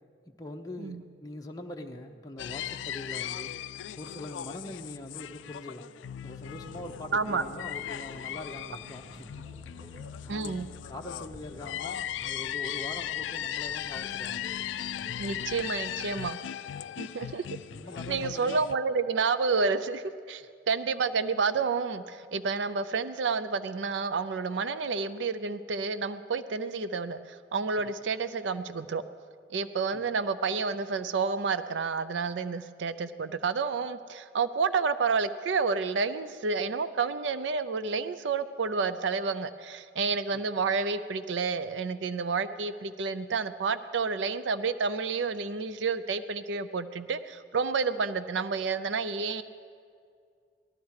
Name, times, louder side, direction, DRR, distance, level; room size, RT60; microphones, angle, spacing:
voice 1, 0.4-3.5 4.0-5.9 6.2-14.5 16.7-16.9 17.7-18.7 29.9-30.0 40.3-40.4, left 1 dB, 20° left, 1 dB, 0.8 m, -43 dB
sound 1, 2.4-18.8, left 10 dB, 85° left, 0.3 m, -38 dB
sound 2, 6.4-15.8, right 1 dB, 30° right, 0.9 m, -53 dB
voice 2, 7.1-7.4 10.3-10.7 15.2-16.4 17.0-17.4 18.1-29.0 29.5-49.4, right 4 dB, 75° right, 13 dB, 0.5 m, -30 dB
18.5 x 13.0 x 4.8 m, 2.2 s
head